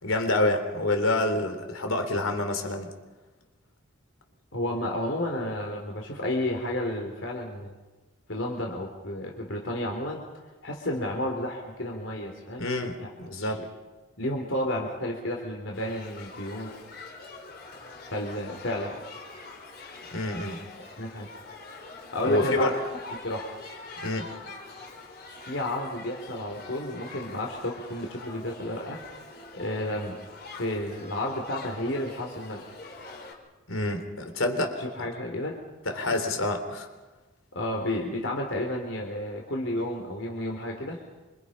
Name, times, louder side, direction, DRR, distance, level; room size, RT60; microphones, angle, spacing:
voice 1, 0.0-2.9 12.6-13.6 20.1-20.6 22.2-22.7 24.0-24.3 33.7-35.1 35.9-36.9, left 2 dB, 85° left, 6 dB, 3.7 m, -27 dB
voice 2, 4.5-7.8 8.3-10.2 10.6-12.6 13.0-13.1 13.4-13.5 14.2-16.7 18.1-19.0 20.5-20.6 21.0-21.3 22.1-22.7 23.2-23.5 25.4-29.2 29.6-30.2 30.5-32.6 34.8-35.5 35.9-36.1 37.5-41.0, left 1 dB, 65° left, 1 dB, 3.6 m, -31 dB
Shout / Human group actions, 15.7-33.3, left 3 dB, 50° left, 4.4 m, -44 dB
27.5 x 26.5 x 5.7 m, 1.2 s
head